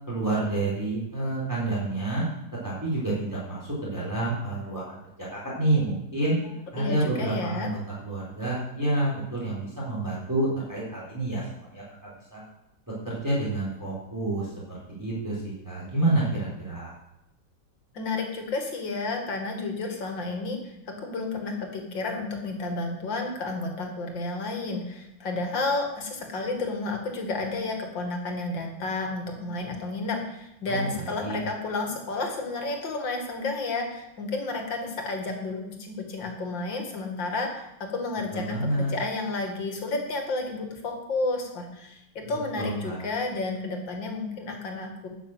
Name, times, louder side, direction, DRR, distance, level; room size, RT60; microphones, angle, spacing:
voice 1, 0.1-2.2 2.6-5.0 5.4-6.4 6.7-11.5 11.7-11.8 12.3-12.4 13.0-16.9 30.7-31.4 38.3-38.9 42.2-43.0, right 2 dB, 10° right, -6 dB, 3.9 m, -28 dB
voice 2, 6.8-7.7 17.9-20.8 21.0-45.1, left 3 dB, 70° left, 3 dB, 2.6 m, -31 dB
12.0 x 6.7 x 7.8 m, 0.90 s
omnidirectional pair, 2.1 m